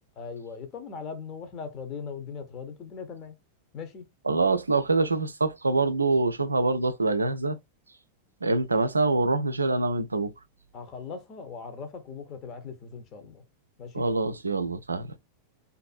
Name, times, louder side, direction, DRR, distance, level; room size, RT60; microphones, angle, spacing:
voice 1, 0.2-3.4 3.7-4.1 10.7-13.4 13.8-14.1, left 5 dB, 35° left, 0.7 m, -39 dB
voice 2, 4.3-7.6 8.4-10.3 13.9-15.0, right 3 dB, 80° right, 0.3 m, -25 dB
2.5 x 2.5 x 2.4 m
figure-of-eight pair, 90°, 0 cm